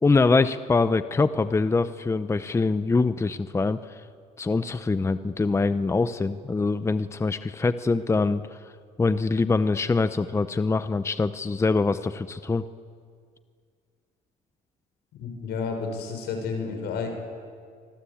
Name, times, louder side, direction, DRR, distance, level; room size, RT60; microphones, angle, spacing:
voice 1, 0.0-3.8 4.4-8.4 9.0-12.6, left 3 dB, 15° left, 12 dB, 0.7 m, -24 dB
voice 2, 15.1-17.1, left 5 dB, 80° left, 4 dB, 6.3 m, -31 dB
25.0 x 25.0 x 8.7 m, 2.1 s
cardioid pair, 110°, 17 cm